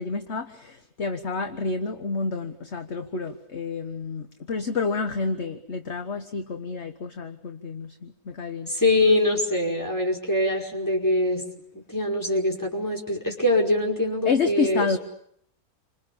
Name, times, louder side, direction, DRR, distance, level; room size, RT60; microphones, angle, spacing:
voice 1, 0.0-8.7 14.2-15.0, left 4 dB, 50° left, 7 dB, 1.5 m, -29 dB
voice 2, 8.7-11.4 11.9-15.0, left 1 dB, 10° left, 0 dB, 5.3 m, -23 dB
28.5 x 26.5 x 7.1 m, 0.70 s
omnidirectional pair, 1.6 m